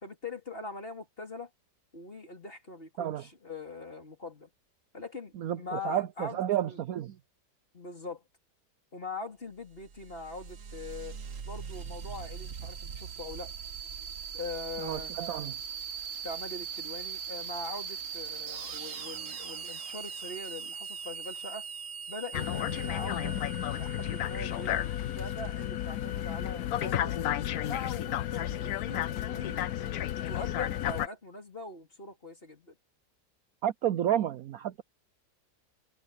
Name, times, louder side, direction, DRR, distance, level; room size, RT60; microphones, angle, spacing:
voice 1, 0.0-1.5 1.9-4.5 4.9-6.8 7.7-8.2 8.9-11.2 11.4-13.5 14.3-15.1 16.2-21.7 22.1-23.3 23.7-27.2 27.6-29.7 30.1-32.8, left 3 dB, 30° left, 3.9 m, -42 dB
voice 2, 5.4-7.2 14.8-15.5 33.6-34.8, right 11 dB, 65° right, 0.9 m, -31 dB
sound 1, 9.7-26.0, right 6 dB, 50° right, 1.4 m, -41 dB
sound 2, 22.3-31.1, left 12 dB, 65° left, 1.1 m, -32 dB
omnidirectional pair, 1.9 m